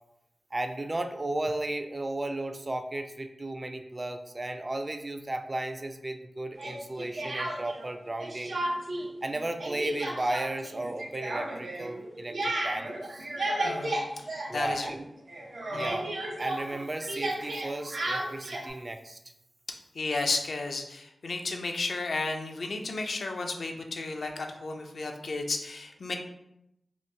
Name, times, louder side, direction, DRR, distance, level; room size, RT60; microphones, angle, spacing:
voice 1, 0.5-8.6 9.2-13.3 14.5-15.0 15.7-16.1 16.4-19.2, right 2 dB, 35° right, 6 dB, 0.3 m, -34 dB
Speech, 6.6-7.9 8.2-9.1 9.3-15.0 15.3-18.7, right 1 dB, 80° right, 0.6 m, -33 dB
voice 2, 13.6-15.0 15.7-16.0 19.9-26.2, left 3 dB, 80° left, 3 dB, 0.4 m, -33 dB
2.9 x 2.3 x 3.3 m, 0.83 s
cardioid pair, 50°, 0 cm